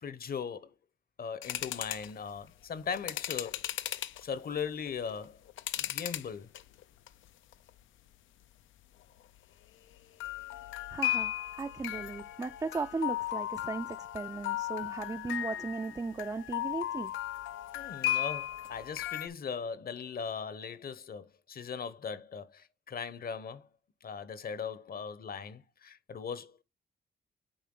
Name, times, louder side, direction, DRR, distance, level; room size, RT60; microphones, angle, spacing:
voice 1, 0.0-0.7 1.2-3.6 4.2-5.4 5.8-6.5 17.7-23.7 24.0-26.6, left 6 dB, 50° left, 1.0 m, -39 dB
sound 1, 1.4-2.1 2.9-4.2 4.9-6.3 6.5-7.1 7.5-7.7 10.2-19.3, left 13 dB, 80° left, 0.6 m, -36 dB
voice 2, 10.9-17.1, right 4 dB, 20° right, 0.4 m, -37 dB
9.3 x 4.1 x 3.8 m
cardioid pair, 80°, 20 cm